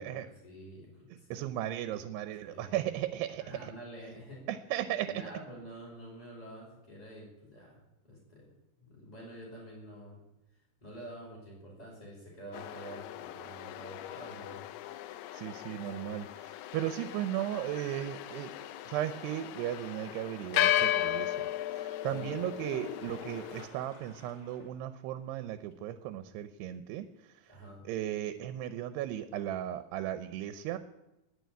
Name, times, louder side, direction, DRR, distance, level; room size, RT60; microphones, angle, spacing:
voice 1, 0.0-1.5 1.9-2.0 2.4-2.9 3.4-4.4 5.0-8.4 8.8-10.2 10.8-14.6 22.1-22.5 27.5-27.8, right 1 dB, 10° left, -5 dB, 5.1 m, -48 dB
voice 2, 1.3-3.7 4.5-5.2 15.3-18.5 18.9-27.1 27.9-30.8, right 12 dB, 85° right, 10 dB, 2.8 m, -36 dB
sound 1, 12.5-23.7, left 13 dB, 80° left, 2.6 m, -35 dB
sound 2, 22.5-24.8 25.1-25.2 25.7-25.8 29.5-29.6, left 4 dB, 30° left, 3.8 m, -49 dB
20.5 x 6.9 x 9.3 m, 0.96 s
omnidirectional pair, 4.7 m